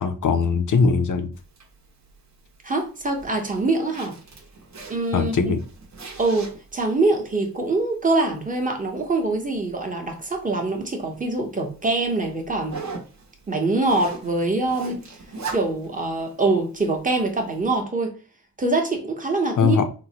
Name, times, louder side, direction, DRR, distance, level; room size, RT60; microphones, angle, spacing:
voice 1, 0.0-1.3 5.1-5.6 19.6-19.9, left 5 dB, 55° left, 0.5 m, -20 dB
Zipper (clothing), 1.3-17.8, right 4 dB, 45° right, 0.9 m, -42 dB
voice 2, 2.6-4.2 4.9-5.5 6.2-12.8 13.5-15.0 15.5-18.2 18.6-19.8, right 2 dB, 20° right, 0.8 m, -24 dB
3.7 x 2.1 x 2.8 m
wide cardioid pair, 100°, 38 cm